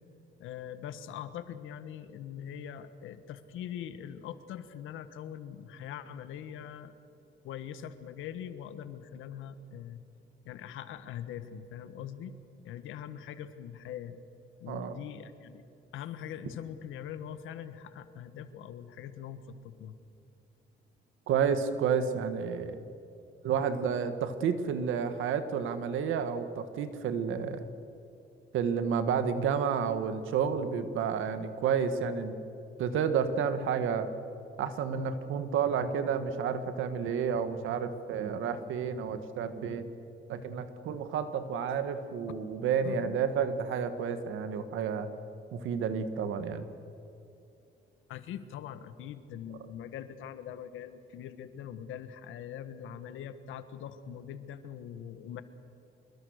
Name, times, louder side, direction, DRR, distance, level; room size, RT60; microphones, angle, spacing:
voice 1, 0.4-6.9 7.4-10.0 10.4-12.3 12.6-14.2 14.6-15.6 15.9-19.9 42.8-43.2 48.1-55.4, left 9 dB, 90° left, 11 dB, 1.5 m, -42 dB
voice 2, 14.7-15.0 21.3-22.8 23.4-27.7 28.5-32.4 32.8-34.1 34.6-39.9 40.3-45.1 45.5-46.7, right 7 dB, 85° right, 10 dB, 1.8 m, -30 dB
25.5 x 22.0 x 6.6 m, 2.7 s
cardioid pair, 90°, 20 cm